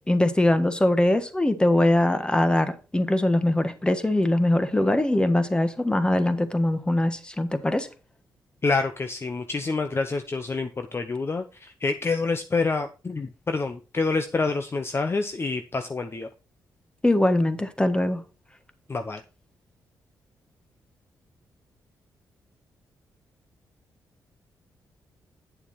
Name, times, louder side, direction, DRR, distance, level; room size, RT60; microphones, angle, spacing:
voice 1, 0.1-7.9 17.0-18.2, left 1 dB, 10° left, 1.4 m, -22 dB
voice 2, 8.6-16.3 18.9-19.2, left 3 dB, 35° left, 0.8 m, -27 dB
9.3 x 7.0 x 4.1 m
cardioid pair, 65°, 7 cm